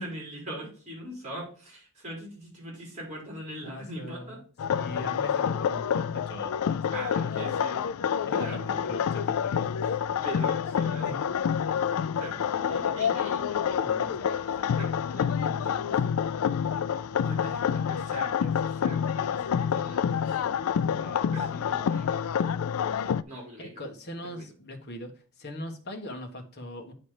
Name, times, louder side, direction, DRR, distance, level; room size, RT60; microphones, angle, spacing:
voice 1, 0.0-4.4 6.9-8.9 10.2-11.2 11.7-11.8 12.2-13.8 14.3-16.1 17.2-20.4 21.3-22.2 23.0-23.8 24.2-24.5, right 1 dB, 30° right, -3 dB, 4.1 m, -42 dB
voice 2, 3.6-4.3 4.7-7.3 8.2-10.0 11.0-11.2 13.8-14.3 15.5-15.8 20.9-21.7 23.6-26.9, left 1 dB, 45° left, 3 dB, 1.3 m, -41 dB
sound 1, 4.6-23.2, left 7 dB, 70° left, 0.3 m, -28 dB
8.8 x 4.1 x 4.8 m, 0.41 s
head